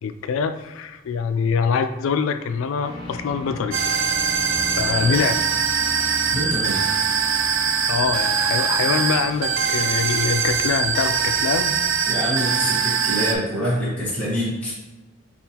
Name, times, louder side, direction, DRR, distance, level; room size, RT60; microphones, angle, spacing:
voice 1, 0.0-3.8 4.8-5.4 7.9-11.8, left 6 dB, 70° left, 10 dB, 0.3 m, -24 dB
sound 1, 2.8-11.9, left 1 dB, 20° left, 0.7 m, -37 dB
sound 2, 3.7-13.4, right 6 dB, 60° right, 0.4 m, -22 dB
voice 2, 6.3-6.8 12.1-14.7, equal, 5° left, -9 dB, 1.2 m, -26 dB
5.5 x 2.4 x 2.8 m, 1.2 s
head